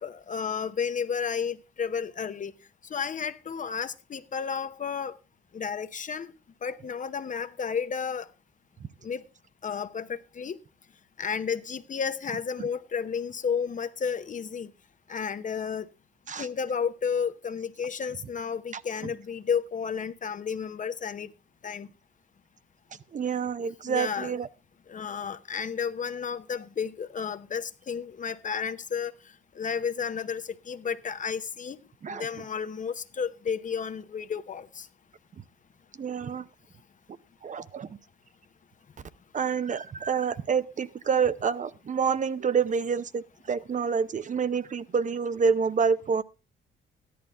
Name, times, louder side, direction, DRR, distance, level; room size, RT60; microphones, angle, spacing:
voice 1, 0.0-2.5 2.9-5.1 5.5-6.3 6.6-8.3 9.0-9.2 9.6-10.6 11.2-14.7 15.1-15.8 16.4-21.3 21.6-21.9 23.9-24.3 24.9-29.1 29.6-31.8 32.1-34.9, left 6 dB, 40° left, 0.8 m, -32 dB
voice 2, 23.1-24.5 32.0-32.3 36.0-36.5 37.4-37.9 39.3-46.2, right 6 dB, 40° right, 0.7 m, -27 dB
13.5 x 11.0 x 3.5 m
cardioid pair, 90°, 20 cm